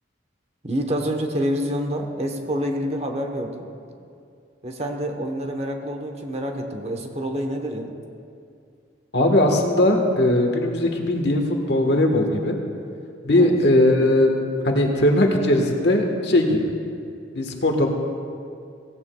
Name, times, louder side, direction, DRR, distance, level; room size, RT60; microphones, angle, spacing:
voice 1, 0.6-3.7 4.6-7.9 13.4-13.6, equal, 35° right, 4 dB, 1.0 m, -27 dB
voice 2, 9.1-11.4 11.7-12.6 13.2-14.3 14.6-16.7 17.3-17.9, left 1 dB, 60° left, 3 dB, 1.4 m, -19 dB
17.0 x 15.5 x 2.3 m, 2.4 s
head